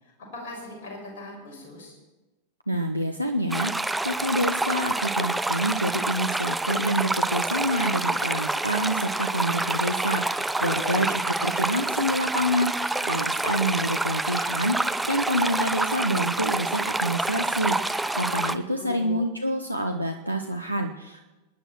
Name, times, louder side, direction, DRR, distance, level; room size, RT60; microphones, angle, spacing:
voice 1, 0.0-2.0 10.6-11.1 18.2-19.2, left 1 dB, 50° left, -1 dB, 6.7 m, -39 dB
voice 2, 2.7-21.2, equal, 90° right, 3 dB, 0.8 m, -27 dB
sound 1, 3.5-18.6, right 2 dB, 5° right, 0.5 m, -27 dB
26.5 x 10.0 x 4.5 m, 1.1 s
figure-of-eight pair, 90°, 0 cm